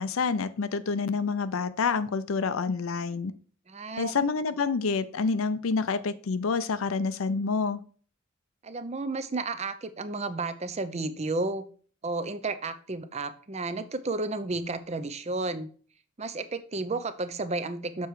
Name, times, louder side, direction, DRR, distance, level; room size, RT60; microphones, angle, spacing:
voice 1, 0.0-3.3 4.0-7.8, left 4 dB, 80° left, 13 dB, 0.5 m, -28 dB
voice 2, 3.7-4.1 8.6-11.6 12.0-15.7 16.2-18.1, right 3 dB, 30° right, 11 dB, 0.6 m, -32 dB
6.9 x 4.5 x 4.7 m, 0.43 s
head